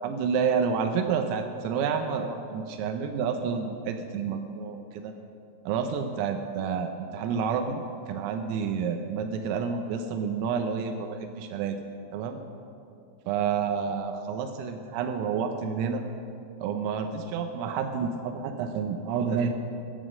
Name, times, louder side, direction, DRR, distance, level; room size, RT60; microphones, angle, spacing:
voice 1, 0.0-5.1 5.7-11.8 12.1-12.4 13.3-16.0 16.6-19.5, right 6 dB, 85° right, 6 dB, 3.5 m, -29 dB
15.0 x 12.0 x 6.2 m, 2.6 s
omnidirectional pair, 5.9 m